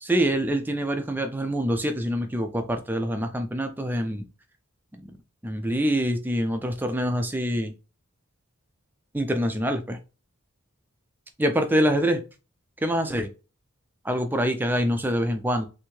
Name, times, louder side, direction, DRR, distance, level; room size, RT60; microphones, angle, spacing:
voice 1, 0.0-4.3 5.4-7.7 9.1-10.0 11.4-12.2 12.8-13.3 14.0-15.7, equal, 10° right, 0.3 m, -25 dB
3.3 x 2.6 x 3.1 m
head